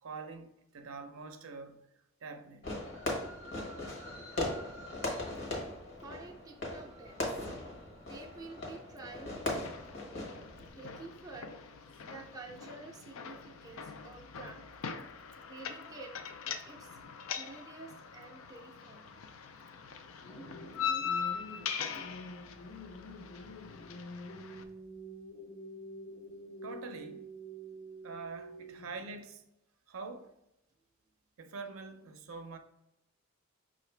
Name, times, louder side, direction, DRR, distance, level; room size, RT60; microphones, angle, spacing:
voice 1, 0.0-1.9 2.2-2.7 10.4-10.7 26.6-27.3 28.0-29.4 29.9-30.3 31.4-32.6, right 4 dB, 80° right, 0.5 m, -45 dB
Fireworks, 2.6-10.7, left 2 dB, 60° left, 1.0 m, -39 dB
voice 2, 6.0-7.5 8.0-9.7 10.7-11.5 12.0-14.6 15.5-16.1 16.6-16.9 17.3-19.2, right 3 dB, 20° right, 0.4 m, -49 dB
sound 1, 9.6-24.6, left 7 dB, 80° left, 0.4 m, -42 dB
sound 2, 20.2-29.2, equal, 25° left, 0.6 m, -47 dB
5.6 x 2.5 x 3.2 m
head